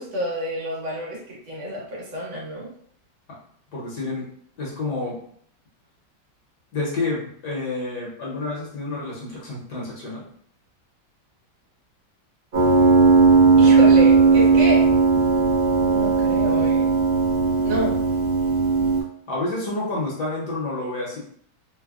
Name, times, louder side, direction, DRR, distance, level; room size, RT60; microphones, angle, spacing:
voice 1, 0.0-2.7 13.6-14.8 15.8-16.8 17.6-17.9, equal, 80° right, -4 dB, 1.7 m, -28 dB
voice 2, 3.7-4.3 4.6-5.2 6.7-10.2 19.3-21.2, left 2 dB, 60° left, -5 dB, 1.4 m, -29 dB
Piano, 12.5-19.0, right 4 dB, 50° right, 0.6 m, -17 dB
3.8 x 2.1 x 2.3 m, 0.62 s
omnidirectional pair, 2.1 m